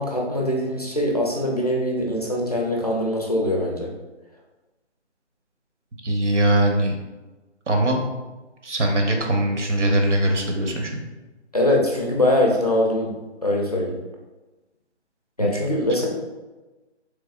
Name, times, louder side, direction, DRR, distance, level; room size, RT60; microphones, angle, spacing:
voice 1, 0.0-3.9 11.5-13.1 13.4-14.0 15.4-16.1, left 1 dB, 35° left, -2 dB, 0.4 m, -22 dB
voice 2, 6.0-6.9 7.7-8.0 8.6-11.0 15.4-15.5, right 1 dB, 85° right, 2 dB, 0.8 m, -21 dB
3.4 x 3.1 x 2.3 m, 1.1 s
figure-of-eight pair, 160°, 35 cm